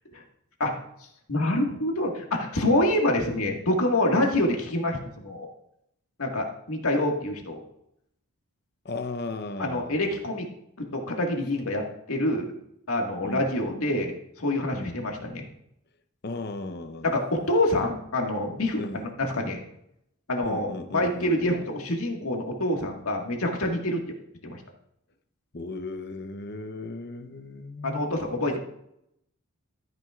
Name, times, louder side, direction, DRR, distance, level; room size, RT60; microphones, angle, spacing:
voice 1, 1.3-5.5 6.2-7.6 9.6-10.5 10.8-11.8 12.1-12.5 12.9-14.1 14.4-15.4 17.0-19.6 20.3-24.0 24.4-24.6 27.8-28.6, left 1 dB, 75° left, 1 dB, 1.8 m, -26 dB
voice 2, 8.8-10.0 13.2-13.5 14.7-15.0 16.2-17.2 18.8-19.1 20.4-21.6 25.5-28.2, left 2 dB, 50° left, 9 dB, 0.8 m, -36 dB
13.5 x 9.3 x 2.5 m, 0.77 s
head